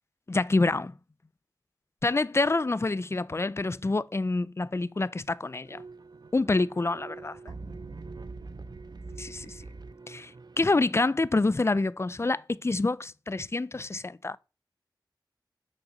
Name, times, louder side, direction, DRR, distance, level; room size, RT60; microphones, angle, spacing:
voice 1, 0.3-0.9 2.0-5.8 6.3-7.4 9.2-9.6 10.1-14.4, left 3 dB, 35° left, 0.4 m, -27 dB
sound 1, 5.7-11.1, right 3 dB, 60° right, 0.5 m, -44 dB
6.6 x 5.9 x 6.3 m
cardioid pair, 45°, 8 cm